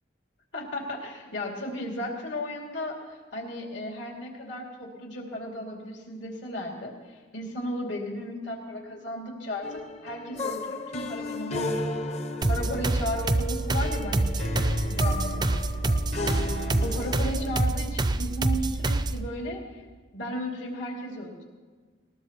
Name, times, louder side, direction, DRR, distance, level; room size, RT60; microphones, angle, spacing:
voice 1, 0.5-11.9 12.5-16.0 16.8-19.8 20.1-21.4, left 1 dB, 75° left, -1 dB, 2.6 m, -35 dB
sound 1, 9.6-17.6, left 2 dB, 35° left, 0.7 m, -34 dB
sound 2, 12.4-19.3, right 2 dB, 20° right, 0.4 m, -26 dB
20.0 x 19.5 x 3.0 m, 1.4 s
head